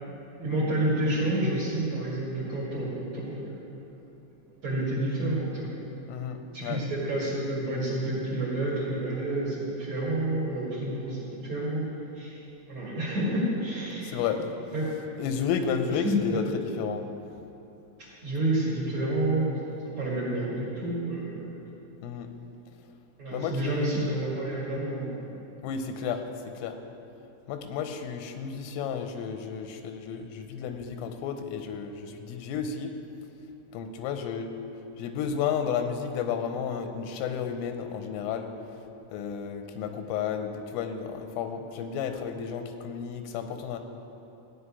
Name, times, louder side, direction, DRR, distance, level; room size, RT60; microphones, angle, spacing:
voice 1, 0.4-3.7 4.6-5.7 6.5-11.8 12.1-12.4 12.7-14.2 14.7-14.9 16.0-16.6 18.0-21.5 23.2-25.4, right 1 dB, 45° right, -6 dB, 2.5 m, -29 dB
voice 2, 6.1-6.8 14.0-14.4 15.2-17.0 22.0-22.3 23.3-23.9 25.6-26.2 26.5-26.8 27.5-32.9 33.7-34.5 35.0-38.5 39.1-43.8, left 7 dB, 85° left, 7 dB, 3.4 m, -32 dB
16.0 x 5.5 x 9.8 m, 2.9 s
omnidirectional pair, 5.7 m